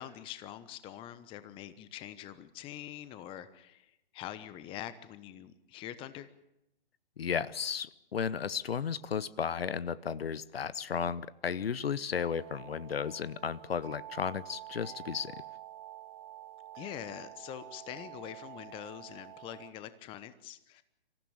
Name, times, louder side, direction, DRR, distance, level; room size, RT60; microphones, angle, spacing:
voice 1, 0.0-6.3 16.8-20.8, left 11 dB, 15° left, 13 dB, 1.0 m, -44 dB
voice 2, 7.2-15.4, left 7 dB, 70° left, 18 dB, 1.1 m, -34 dB
sound 1, 12.1-19.7, right 13 dB, 35° right, 1.7 m, -48 dB
25.5 x 15.5 x 8.7 m, 0.84 s
hypercardioid pair, 140°, 31 cm